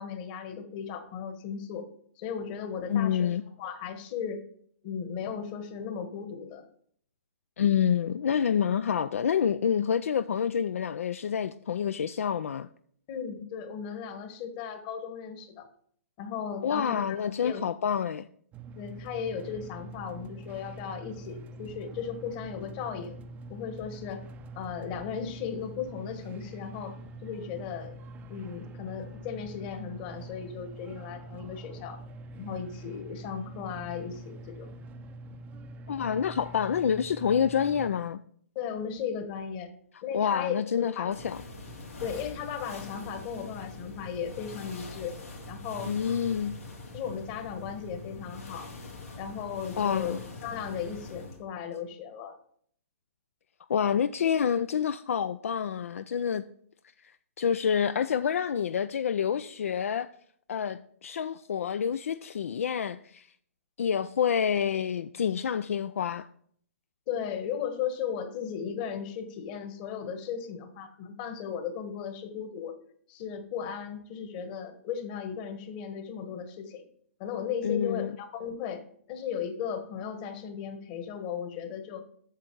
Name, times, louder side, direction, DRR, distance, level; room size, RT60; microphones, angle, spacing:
voice 1, 0.0-1.9 2.2-3.3 3.6-4.4 4.8-6.7 13.1-15.7 16.2-17.2 17.4-17.6 18.8-23.2 23.5-24.2 24.5-26.9 27.2-27.9 28.3-32.0 32.4-34.7 38.5-39.7 40.0-41.1 42.0-45.2 45.5-45.9 46.9-48.7 49.2-50.1 50.4-52.3 67.1-72.8 73.1-76.8 77.2-82.0, left 7 dB, 35° left, 1.3 m, -36 dB
voice 2, 2.9-3.4 7.6-12.7 16.6-18.3 35.9-38.2 40.1-41.4 45.8-46.6 49.8-50.2 53.7-56.4 57.4-60.1 60.5-63.3 63.8-66.3 77.6-78.2, left 8 dB, 70° left, 0.3 m, -28 dB
sound 1, 18.5-37.9, right 1 dB, 20° right, 0.5 m, -45 dB
sound 2, 41.1-51.4, left 2 dB, 90° left, 2.5 m, -43 dB
8.1 x 6.6 x 4.6 m
hypercardioid pair, 135°, 8 cm